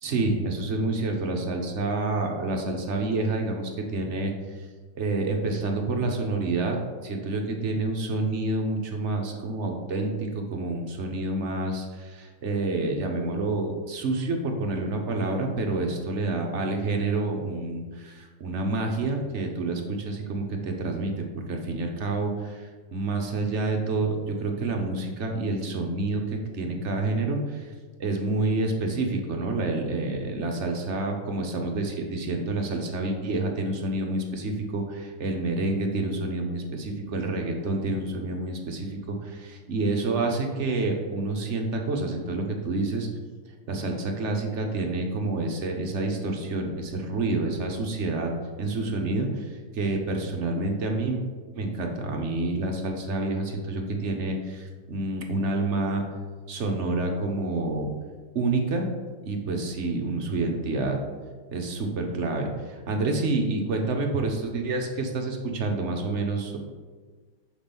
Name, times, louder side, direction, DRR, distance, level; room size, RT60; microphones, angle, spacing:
voice 1, 0.0-4.7 5.0-21.1 21.5-27.7 28.0-43.1 43.7-48.3 48.6-51.2 51.5-56.0 56.5-57.9 58.3-58.9 59.2-61.0 61.5-66.6, right 2 dB, 50° right, 2 dB, 1.0 m, -28 dB
5.9 x 5.2 x 5.3 m, 1.4 s
omnidirectional pair, 2.0 m